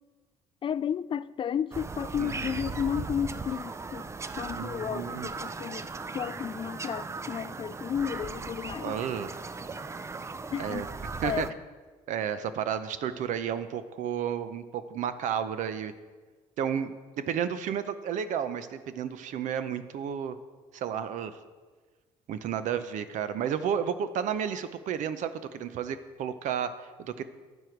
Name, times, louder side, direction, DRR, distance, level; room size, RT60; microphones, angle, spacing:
voice 1, 0.6-4.1 4.4-5.9 6.1-8.9 10.5-10.9 11.2-11.5, left 8 dB, 40° left, 0.3 m, -32 dB
Bird vocalization bird call bird song, 1.7-11.5, right 4 dB, 20° right, 0.5 m, -38 dB
voice 2, 2.2-2.6 4.5-5.3 8.8-9.3 10.6-10.9 11.2-11.5 12.1-15.9 16.6-20.4 20.7-21.4 22.3-27.2, right 8 dB, 70° right, 0.7 m, -32 dB
12.0 x 8.2 x 4.6 m
supercardioid pair, 85°, 13 cm